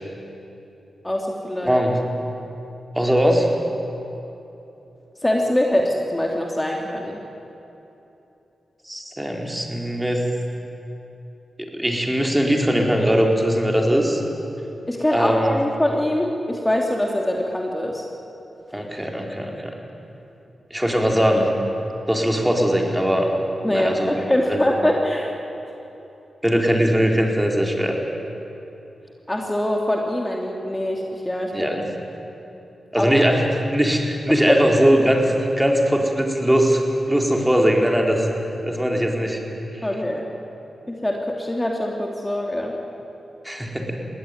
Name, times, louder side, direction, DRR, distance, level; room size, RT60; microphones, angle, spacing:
voice 1, 1.0-1.8 5.2-7.2 14.9-18.0 23.6-25.3 29.3-31.7 32.9-33.1 34.5-34.6 39.8-40.3 40.9-42.8, left 1 dB, 15° left, 0 dB, 2.8 m, -23 dB
voice 2, 1.6-2.0 3.0-3.5 8.9-10.2 11.6-14.2 15.1-15.5 18.7-19.8 20.7-21.5 22.1-23.3 23.6-24.1 24.5-24.6 26.4-27.9 31.5-31.9 32.9-33.4 33.7-36.8 37.1-38.3 38.6-39.4 39.7-39.9 43.4-44.0, equal, 10° right, 1 dB, 4.2 m, -20 dB
21.0 x 17.0 x 9.6 m, 3.0 s
supercardioid pair, 40°, 0 cm